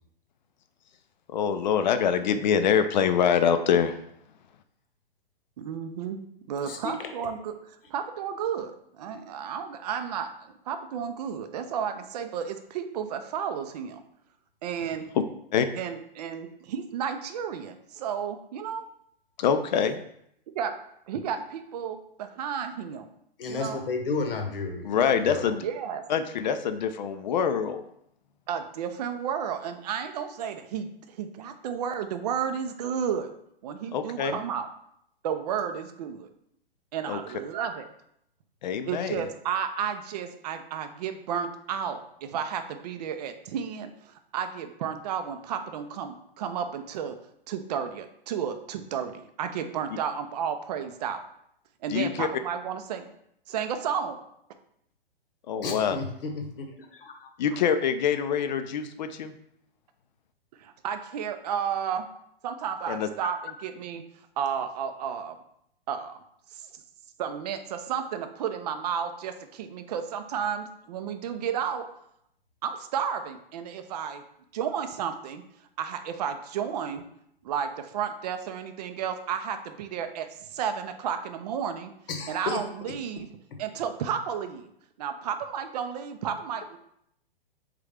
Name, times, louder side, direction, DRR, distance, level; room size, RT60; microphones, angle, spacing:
voice 1, 1.3-4.0 15.5-15.7 19.4-20.0 24.8-25.6 26.1-27.8 33.9-34.4 37.1-37.2 38.6-39.2 51.9-52.3 55.5-56.0 57.4-59.3 62.9-63.1, left 7 dB, 50° left, 9 dB, 0.4 m, -25 dB
voice 2, 5.6-14.0 14.6-15.1 15.7-18.9 20.5-20.8 21.1-23.1 23.4-23.8 25.6-26.0 28.5-33.3 33.6-34.7 35.2-36.3 36.9-37.9 38.9-47.2 47.5-51.2 51.8-53.1 53.5-54.2 60.5-62.1 62.4-64.0 64.4-65.4 65.9-66.2 66.5-66.8 67.2-71.9 72.6-74.2 74.5-75.4 75.8-77.0 77.4-81.9 82.3-83.3 83.6-84.7 85.0-86.8, right 8 dB, 45° right, 9 dB, 0.4 m, -32 dB
voice 3, 23.4-25.0 25.2-25.4 55.6-56.7 56.9-57.3 82.1-82.6, left 4 dB, 65° left, 4 dB, 0.9 m, -32 dB
3.7 x 3.3 x 3.3 m, 0.73 s
hypercardioid pair, 125°, 30 cm